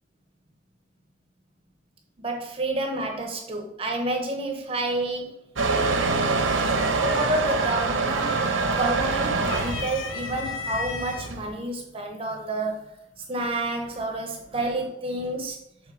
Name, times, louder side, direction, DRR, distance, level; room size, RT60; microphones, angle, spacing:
voice 1, 2.2-5.3 7.0-8.4 8.8-15.6, right 2 dB, 30° right, 2 dB, 0.8 m, -29 dB
Motor vehicle (road) / Engine starting / Accelerating revving vroom, 5.6-11.4, right 3 dB, 80° right, 1.0 m, -25 dB
sound 1, 7.5-7.9 8.3-9.0 9.4-11.3 12.2-12.3 13.5-14.0, left 5 dB, 75° left, 0.7 m, -35 dB
7.1 x 3.7 x 4.8 m, 0.80 s
head